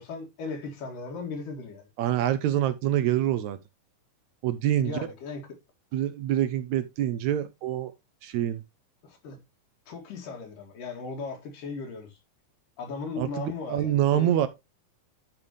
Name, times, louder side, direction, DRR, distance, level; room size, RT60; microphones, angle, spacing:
voice 1, 0.0-1.9 4.8-5.4 9.0-9.4 9.9-12.2 12.8-14.3, left 4 dB, 85° left, 3.9 m, -37 dB
voice 2, 2.0-3.6 4.4-5.0 5.9-7.9 8.2-8.6 13.2-14.5, right 11 dB, 75° right, 1.8 m, -26 dB
10.5 x 5.5 x 3.1 m
omnidirectional pair, 3.7 m